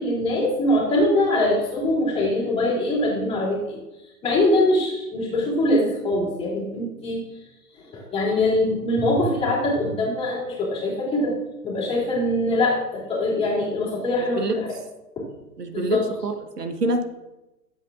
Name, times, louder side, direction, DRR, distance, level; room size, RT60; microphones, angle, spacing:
voice 1, 0.0-3.8 4.2-7.2 7.9-11.3 11.6-14.7 15.2-15.3 15.7-16.0, left 1 dB, 10° left, -5 dB, 2.9 m, -23 dB
voice 2, 15.6-17.0, right 2 dB, 75° right, 6 dB, 1.2 m, -26 dB
13.0 x 7.8 x 2.5 m, 0.98 s
figure-of-eight pair, 125°, 47 cm